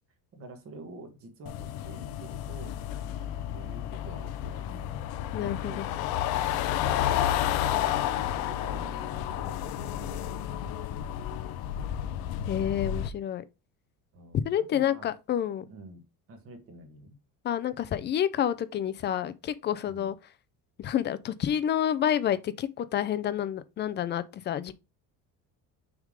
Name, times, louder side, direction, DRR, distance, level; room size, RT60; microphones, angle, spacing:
voice 1, 0.3-7.2 7.7-11.5 14.1-14.4 14.7-15.1 15.6-16.0 16.3-17.2 19.8-20.1, right 1 dB, 40° right, 1.7 m, -48 dB
sound 1, 1.5-13.1, left 11 dB, 85° left, 0.7 m, -31 dB
voice 2, 5.3-5.8 12.5-13.4 14.4-15.6 17.4-20.1 20.8-24.7, left 10 dB, 30° left, 0.4 m, -29 dB
6.4 x 3.7 x 5.0 m
cardioid pair, 165°, 36 cm